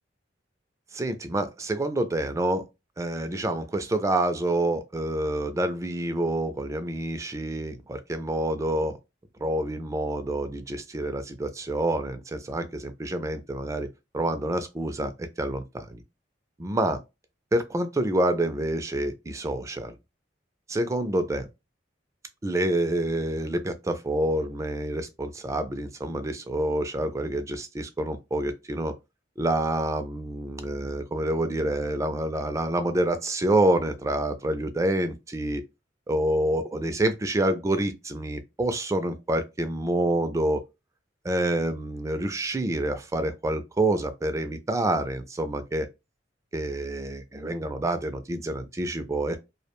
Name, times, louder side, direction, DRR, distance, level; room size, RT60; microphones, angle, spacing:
voice 1, 0.9-2.6 3.0-9.0 9.4-13.9 14.1-16.0 16.6-17.0 17.5-19.9 20.7-21.5 22.4-28.9 29.4-35.6 36.1-40.6 41.2-45.9 46.5-49.4, right 1 dB, 15° right, 0.3 m, -27 dB
2.4 x 2.1 x 2.9 m
head